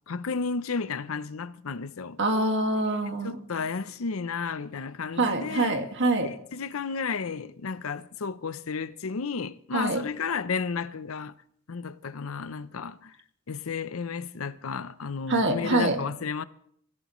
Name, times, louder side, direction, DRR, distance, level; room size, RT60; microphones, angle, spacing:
voice 1, 0.1-2.2 3.2-5.8 6.2-11.3 11.7-13.1 13.5-16.4, left 5 dB, 75° left, 0.6 m, -33 dB
voice 2, 2.2-3.4 5.2-6.3 9.7-10.0 15.3-16.0, right 2 dB, 60° right, 2.0 m, -25 dB
25.0 x 15.5 x 3.1 m
head